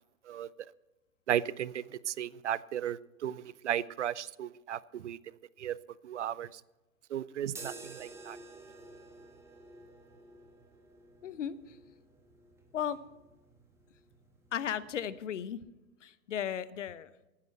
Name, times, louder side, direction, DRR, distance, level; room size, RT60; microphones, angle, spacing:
voice 1, 1.3-5.2 5.6-5.8 6.0-6.5 7.1-8.4, right 10 dB, 55° right, 21 dB, 0.5 m, -35 dB
sound 1, 7.5-15.3, right 3 dB, 5° right, 1.3 m, -52 dB
voice 2, 11.2-11.8 12.7-13.0 14.5-15.6 16.0-17.1, left 9 dB, 60° left, 17 dB, 0.8 m, -35 dB
15.5 x 9.8 x 4.4 m, 1.1 s
figure-of-eight pair, 115°, 42 cm